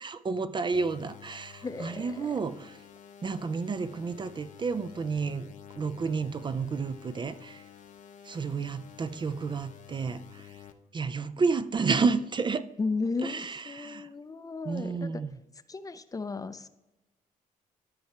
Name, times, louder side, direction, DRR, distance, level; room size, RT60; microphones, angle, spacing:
voice 1, 0.0-2.8 3.2-7.7 8.2-10.6 10.9-12.7 13.2-14.1 14.7-15.4, right 4 dB, 30° right, 12 dB, 0.4 m, -31 dB
sound 1, 0.7-10.7, left 10 dB, 60° left, 0.8 m, -50 dB
voice 2, 1.6-2.4 12.8-15.2 15.7-16.7, left 4 dB, 25° left, 12 dB, 0.5 m, -35 dB
13.0 x 4.6 x 3.4 m, 1.0 s
cardioid pair, 95°, 15 cm